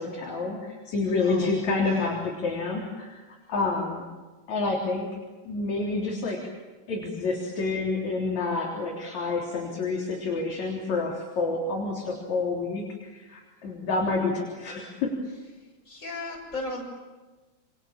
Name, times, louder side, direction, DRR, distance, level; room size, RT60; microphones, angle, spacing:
voice 1, 0.0-3.2 3.5-4.1 4.5-5.0 5.4-6.4 6.9-15.1, left 3 dB, 40° left, -2 dB, 4.6 m, -28 dB
voice 2, 1.2-2.2 15.6-16.8, left 2 dB, 15° left, 0 dB, 7.4 m, -37 dB
29.0 x 26.5 x 7.4 m, 1.3 s
omnidirectional pair, 5.4 m